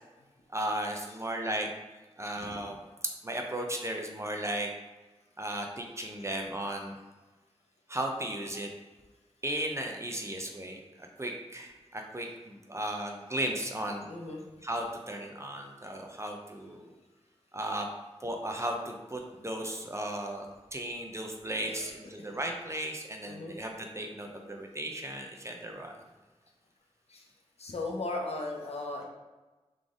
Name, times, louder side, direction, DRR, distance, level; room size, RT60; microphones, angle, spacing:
voice 1, 0.5-1.7 2.2-2.8 3.2-4.7 5.4-7.0 7.9-8.7 9.4-14.1 14.6-16.9 17.5-17.9 18.2-20.5 20.7-26.0, right 1 dB, 25° right, 2 dB, 0.7 m, -35 dB
voice 2, 14.1-14.4 21.7-22.3 23.3-23.6 27.1-27.3 27.6-29.0, left 2 dB, 65° left, 0 dB, 0.8 m, -37 dB
4.0 x 3.2 x 3.7 m, 1.2 s
wide cardioid pair, 60°, 11 cm